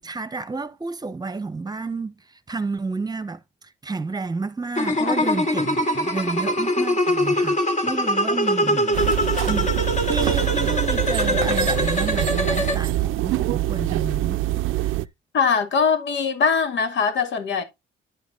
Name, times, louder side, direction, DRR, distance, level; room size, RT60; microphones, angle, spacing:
voice 1, 0.0-2.1 2.5-3.4 3.8-7.6 7.8-9.2 9.4-14.4, right 3 dB, 20° right, 1.1 m, -30 dB
sound 1, 4.8-12.7, left 1 dB, 40° left, 2.8 m, -23 dB
sound 2, 8.9-15.1, right 16 dB, 90° right, 0.5 m, -24 dB
voice 2, 15.3-17.6, left 5 dB, 70° left, 2.2 m, -22 dB
11.0 x 5.1 x 3.8 m
cardioid pair, 90°, 20 cm